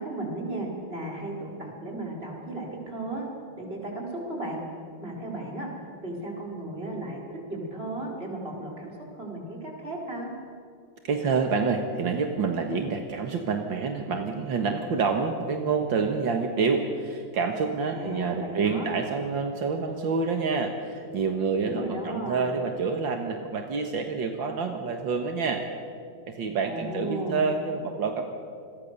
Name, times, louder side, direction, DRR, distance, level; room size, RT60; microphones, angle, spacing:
voice 1, 0.0-3.3 3.6-4.6 5.0-5.7 6.0-10.3 17.9-18.9 21.6-22.4 26.6-27.5, right 1 dB, 30° right, -1 dB, 5.2 m, -35 dB
voice 2, 11.0-25.6 26.3-28.2, right 5 dB, 75° right, 4 dB, 2.2 m, -27 dB
28.5 x 22.0 x 6.8 m, 2.3 s
omnidirectional pair, 2.1 m